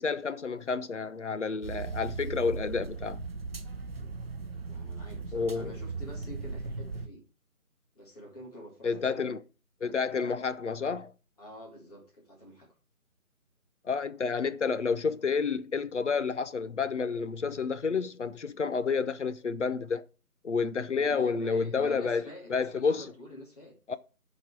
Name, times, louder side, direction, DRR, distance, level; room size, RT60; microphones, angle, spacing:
voice 1, 0.0-3.2 5.3-5.8 8.8-9.4 9.8-11.1 13.8-20.0 20.4-22.2 22.5-23.1 23.9-24.0, left 5 dB, 55° left, 0.7 m, -30 dB
sound 1, 1.6-7.1, right 4 dB, 45° right, 0.8 m, -38 dB
voice 2, 4.5-7.2 7.9-9.4 11.4-12.7 20.9-22.5 22.8-23.8, left 1 dB, 25° left, 2.8 m, -48 dB
10.5 x 4.4 x 4.6 m
figure-of-eight pair, 160°, 43 cm